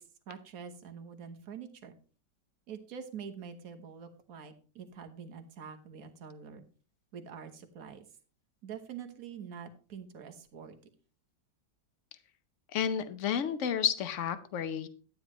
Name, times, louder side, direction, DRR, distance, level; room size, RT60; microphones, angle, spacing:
voice 1, 0.0-1.9 2.7-6.6 7.1-8.0 8.6-10.8, right 7 dB, 55° right, 7 dB, 1.5 m, -45 dB
voice 2, 12.7-14.9, left 8 dB, 50° left, 11 dB, 1.0 m, -31 dB
12.0 x 9.6 x 3.1 m, 0.38 s
omnidirectional pair, 1.9 m